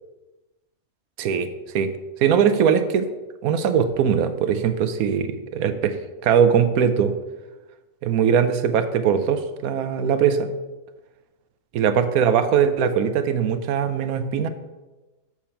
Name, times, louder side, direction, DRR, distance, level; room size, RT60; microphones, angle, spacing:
voice 1, 1.2-1.5 1.7-1.9 2.2-3.1 3.4-6.0 6.2-7.1 8.0-10.5 11.7-14.5, right 7 dB, 90° right, 9 dB, 1.1 m, -20 dB
7.1 x 6.1 x 4.4 m, 1.1 s
omnidirectional pair, 1.5 m